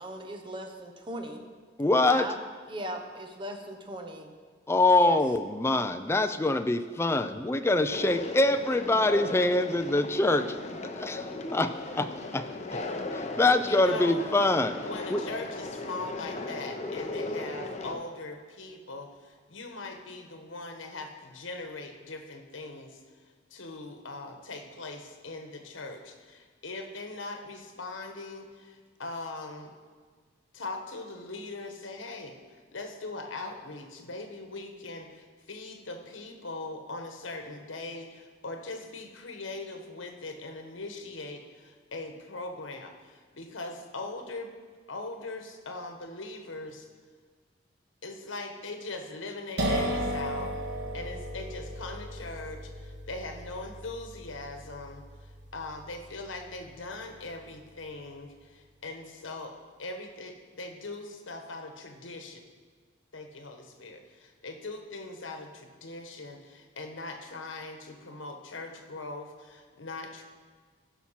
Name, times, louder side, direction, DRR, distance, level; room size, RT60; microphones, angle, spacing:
voice 1, 0.0-1.4 2.0-2.4 2.7-4.3 5.0-5.2, right 1 dB, 25° right, 4 dB, 0.9 m, -38 dB
voice 2, 1.8-2.3 4.7-12.5 12.7-12.8 13.1-15.2, left 2 dB, 15° left, 9 dB, 0.4 m, -25 dB
Conversation, 7.9-17.9, left 2 dB, 35° left, 0.7 m, -37 dB
voice 3, 13.7-14.2 14.8-23.0 23.5-29.8 30.5-44.5 44.9-46.9 48.0-50.5 50.9-59.5 59.8-62.4 63.1-70.2, left 2 dB, 75° left, 5 dB, 1.2 m, -40 dB
sound 1, 49.6-57.1, equal, 55° right, 1.7 m, -35 dB
14.5 x 5.9 x 5.7 m, 1.5 s
head